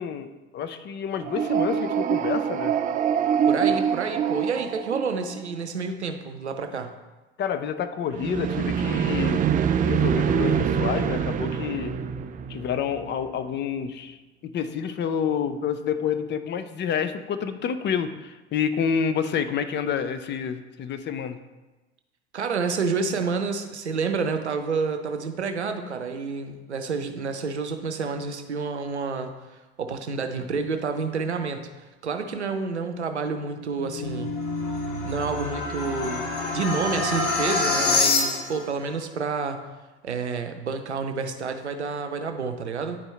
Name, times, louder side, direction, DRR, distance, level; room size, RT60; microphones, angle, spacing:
voice 1, 0.0-2.8 7.4-9.4 9.9-11.9 12.5-14.2 14.4-21.4, left 7 dB, 35° left, 10 dB, 0.6 m, -28 dB
sound 1, 1.2-5.5 8.1-13.1, right 8 dB, 25° right, 0.4 m, -25 dB
voice 2, 3.5-6.9 22.3-31.7 32.0-34.3 35.0-39.6 40.0-43.0, right 4 dB, 90° right, 7 dB, 0.6 m, -29 dB
sound 2, 33.5-38.7, left 3 dB, 65° left, 2.2 m, -26 dB
9.7 x 4.5 x 3.2 m, 1.1 s
figure-of-eight pair, 70°, 33 cm